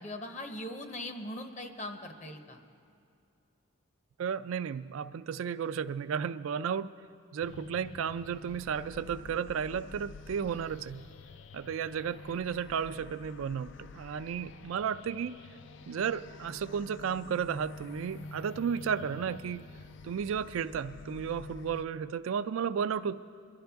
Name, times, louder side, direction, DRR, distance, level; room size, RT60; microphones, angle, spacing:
voice 1, 0.0-2.6, left 1 dB, 35° left, 6 dB, 0.8 m, -40 dB
voice 2, 4.2-6.9 7.3-11.1 11.5-15.5 15.9-19.6 20.0-23.2, right 7 dB, 75° right, 13 dB, 0.3 m, -33 dB
sound 1, 7.4-21.9, left 3 dB, 60° left, 0.3 m, -48 dB
22.5 x 11.5 x 3.5 m, 2.5 s
head